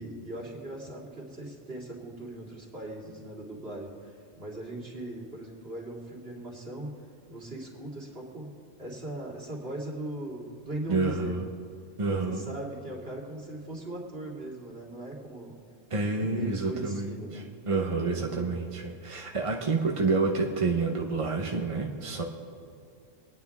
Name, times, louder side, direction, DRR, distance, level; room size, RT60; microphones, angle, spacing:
voice 1, 0.0-6.9 7.3-8.5 8.8-11.5 12.3-15.6 16.2-17.5 18.0-18.6, right 1 dB, 45° right, -3 dB, 3.0 m, -39 dB
voice 2, 10.9-11.5 12.0-12.4 15.9-22.2, right 3 dB, 30° right, 1 dB, 0.8 m, -29 dB
26.0 x 9.8 x 3.6 m, 2.4 s
omnidirectional pair, 1.4 m